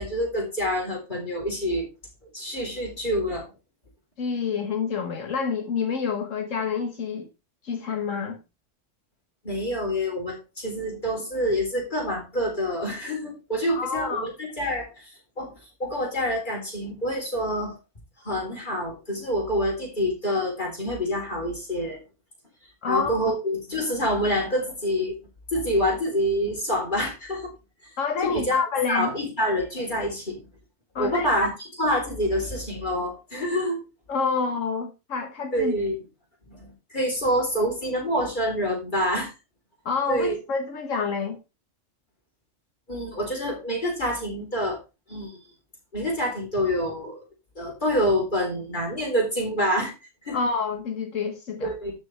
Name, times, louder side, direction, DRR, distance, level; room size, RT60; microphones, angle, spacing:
voice 1, 0.0-1.9 2.3-3.5 9.4-15.5 15.8-17.8 18.2-22.0 22.9-25.2 25.5-27.5 27.8-27.9 28.2-28.6 28.9-30.4 31.0-31.5 31.8-33.8 35.5-36.0 36.5-39.3 40.1-40.4 42.9-44.8 45.1-45.4 45.9-47.2 47.6-49.9 50.2-50.4 51.6-51.9, equal, 40° left, 4.0 m, -27 dB
voice 2, 4.2-7.3 7.6-8.4 13.7-14.3 22.8-23.3 28.0-29.1 31.0-31.6 34.1-35.7 39.9-41.4 50.3-51.7, left 5 dB, 80° left, 1.6 m, -28 dB
12.5 x 6.3 x 3.3 m
omnidirectional pair, 1.3 m